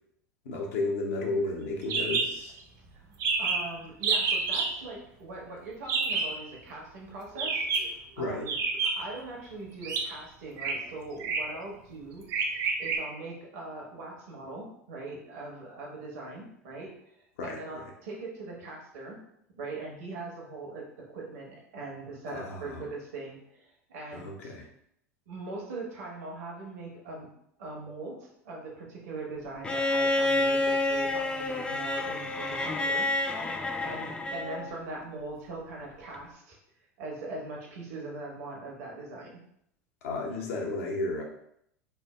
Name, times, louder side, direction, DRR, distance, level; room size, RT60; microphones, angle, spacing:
voice 1, 0.4-2.6 8.2-8.5 17.4-17.9 22.3-22.8 24.1-24.7 40.0-41.2, left 2 dB, 70° left, 0 dB, 0.8 m, -33 dB
sound 1, 1.9-2.3 2.6-2.7 2.9-3.0 3.2-3.7 4.0-4.7 5.9-6.3 7.3-7.9 8.5-9.2 9.8-10.0 10.6-10.7 11.2-11.6 12.3-13.0, right 4 dB, 45° right, 0.6 m, -28 dB
voice 2, 3.4-8.6 8.9-16.9 17.4-19.2 19.6-24.5 25.3-27.3 27.6-33.4 33.8-36.6 37.0-39.4, right 2 dB, 70° right, -2 dB, 1.0 m, -41 dB
Bowed string instrument, 29.6-34.7 36.1-36.2, left 2 dB, 15° left, 0.4 m, -29 dB
3.3 x 2.0 x 3.2 m, 0.73 s
hypercardioid pair, 80°, 8 cm